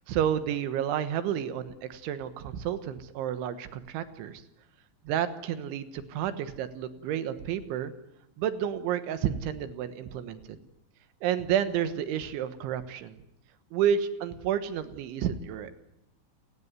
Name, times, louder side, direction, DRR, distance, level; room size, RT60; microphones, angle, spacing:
voice 1, 0.1-4.4 5.1-7.9 8.4-10.6 11.2-13.2 13.7-15.8, right 9 dB, 85° right, 10 dB, 3.7 m, -30 dB
29.5 x 16.0 x 9.6 m, 0.89 s
omnidirectional pair, 5.3 m